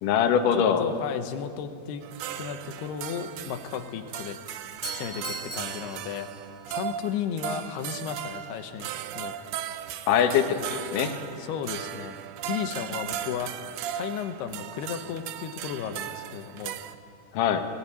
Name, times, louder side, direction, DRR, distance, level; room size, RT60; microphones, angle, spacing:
voice 1, 0.0-0.8 10.1-11.2 17.3-17.7, left 8 dB, 65° left, 6 dB, 2.6 m, -23 dB
voice 2, 0.5-2.0 2.4-4.6 4.9-6.3 6.7-8.9 9.1-9.3 11.4-12.2 12.5-13.5 13.9-16.8, left 8 dB, 85° left, 8 dB, 3.1 m, -34 dB
sound 1, 2.0-17.0, right 10 dB, 80° right, 2.7 m, -37 dB
Doorbell, 4.6-6.8, equal, 25° left, 0.8 m, -40 dB
19.5 x 18.5 x 8.7 m, 2.3 s
omnidirectional pair, 4.6 m